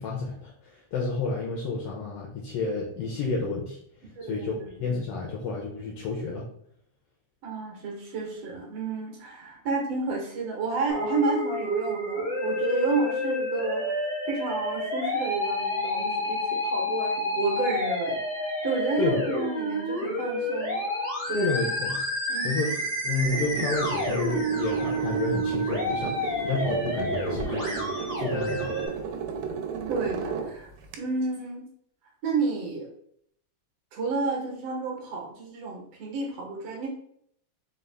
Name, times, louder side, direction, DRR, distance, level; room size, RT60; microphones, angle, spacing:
voice 1, 0.0-3.8 4.2-6.4 19.0-19.3 21.3-22.0 22.4-22.7 23.0-27.9 28.2-28.8, left 3 dB, 90° left, -1 dB, 1.3 m, -30 dB
voice 2, 4.1-4.7 7.4-14.0 14.3-18.2 18.6-20.8 21.3-21.5 22.3-22.6 29.9-30.7 31.0-31.6 32.2-32.9 33.9-36.9, right 4 dB, 70° right, -1 dB, 1.7 m, -30 dB
Musical instrument, 10.9-28.9, left 1 dB, 50° right, 0.4 m, -29 dB
sound 1, 23.2-31.0, right 6 dB, 85° right, 2.0 m, -34 dB
4.9 x 2.3 x 3.3 m, 0.69 s
omnidirectional pair, 3.3 m